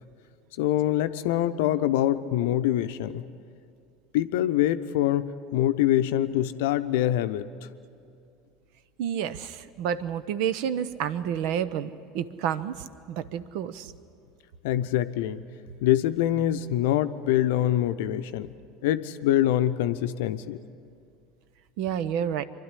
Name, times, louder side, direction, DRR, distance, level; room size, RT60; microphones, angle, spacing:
voice 1, 0.6-3.2 4.1-7.5 14.6-15.4 15.8-18.5 18.8-20.6, left 12 dB, 70° left, 11 dB, 0.7 m, -24 dB
voice 2, 9.0-12.7 13.1-13.9 21.8-22.4, right 9 dB, 65° right, 15 dB, 0.7 m, -29 dB
25.0 x 11.5 x 9.9 m, 2.4 s
hypercardioid pair, 75°, 0 cm